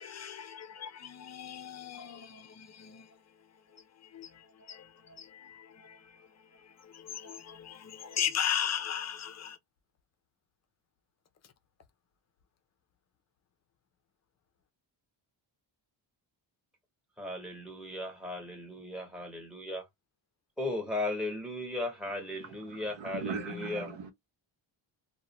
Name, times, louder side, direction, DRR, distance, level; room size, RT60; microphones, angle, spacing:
voice 1, 0.0-3.1 4.0-6.3 6.5-9.6 23.6-23.7, left 8 dB, 35° left, 0.4 m, -37 dB
voice 2, 17.2-19.9 20.6-23.9, left 2 dB, ahead, 0.9 m, -36 dB
voice 3, 22.4-24.1, right 5 dB, 70° right, 0.9 m, -40 dB
2.4 x 2.1 x 2.9 m
wide cardioid pair, 140°, 47 cm